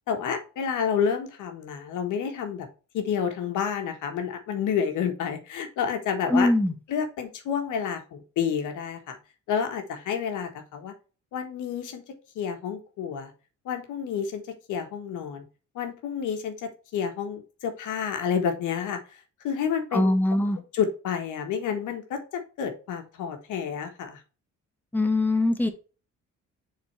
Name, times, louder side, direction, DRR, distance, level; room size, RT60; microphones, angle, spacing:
voice 1, 0.1-2.7 2.9-6.5 6.9-9.2 9.5-10.9 11.3-13.3 13.6-14.4 14.7-15.4 15.7-19.0 19.4-20.1 20.7-24.2, left 7 dB, 85° left, 5 dB, 1.5 m, -29 dB
voice 2, 6.3-6.7 19.9-20.6 24.9-25.7, left 1 dB, 5° left, 5 dB, 1.4 m, -22 dB
6.9 x 4.0 x 4.6 m, 0.35 s
cardioid pair, 90°, 30 cm